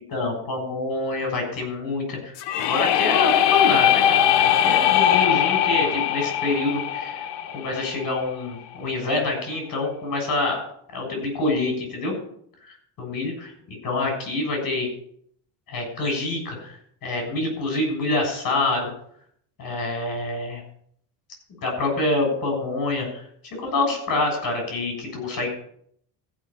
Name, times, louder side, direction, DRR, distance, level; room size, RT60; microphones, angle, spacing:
voice 1, 0.1-7.2 7.5-10.6 10.9-12.1 12.6-14.9 15.7-16.7 17.0-18.9 19.6-20.6 21.6-23.2 23.5-25.5, left 2 dB, 50° left, 2 dB, 7.1 m, -26 dB
sound 1, 2.4-8.2, left 10 dB, 85° left, 1.1 m, -20 dB
15.0 x 6.0 x 8.7 m, 0.66 s
cardioid pair, 150°, 41 cm